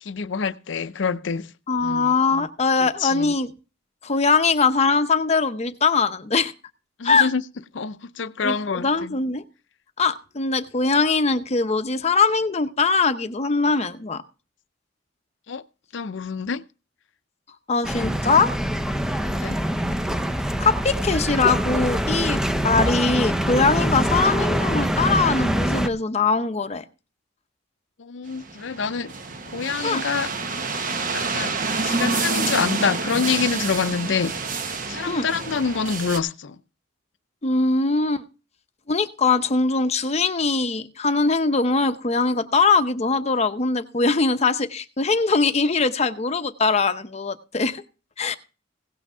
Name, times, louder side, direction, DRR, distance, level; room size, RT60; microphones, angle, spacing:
voice 1, 0.0-1.5 1.8-2.1 2.8-3.3 7.0-7.4 7.7-9.2 15.5-15.6 15.9-16.6 19.1-19.6 28.0-29.1 29.5-30.3 31.1-31.5 31.8-34.4 34.9-36.6, left 5 dB, 70° left, 0.6 m, -26 dB
voice 2, 1.7-3.5 4.0-6.5 7.0-7.3 8.4-9.4 10.0-14.2 17.7-18.5 20.6-26.8 29.8-30.0 35.1-35.3 37.4-38.2 38.9-47.8 48.2-48.4, left 4 dB, 35° left, 0.7 m, -21 dB
sound 1, 17.8-25.9, equal, 5° right, 0.6 m, -24 dB
sound 2, 28.3-36.2, right 4 dB, 45° right, 1.0 m, -28 dB
16.5 x 6.0 x 5.5 m
head